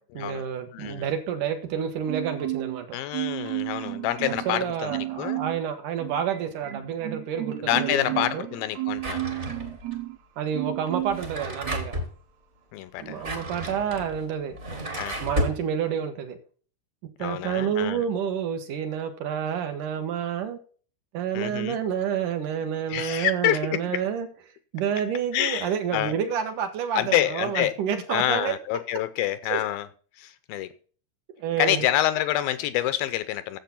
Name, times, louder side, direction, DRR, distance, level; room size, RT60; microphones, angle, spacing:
voice 1, 0.1-3.0 4.2-8.5 10.4-11.9 13.0-14.6 15.2-16.4 17.2-20.6 21.1-24.3 24.7-28.6 29.5-29.6 31.4-31.9, right 8 dB, 65° right, 2.5 m, -29 dB
voice 2, 0.7-1.1 2.9-5.4 7.6-9.2 12.7-13.2 15.0-15.2 17.2-18.0 21.3-21.8 22.9-23.8 25.3-26.1 27.0-27.7 28.1-29.9 30.2-30.7 31.6-33.6, left 13 dB, 80° left, 2.4 m, -27 dB
Marimba xylophone, 2.1-2.8 3.1-4.6 4.9-5.6 6.0-10.2 10.5-11.3 11.6-11.8, right 18 dB, 80° right, 3.1 m, -32 dB
Drawer open or close, 9.0-9.9 11.0-12.1 13.0-15.6, right 1 dB, 30° right, 1.4 m, -32 dB
10.5 x 7.6 x 5.9 m
omnidirectional pair, 4.6 m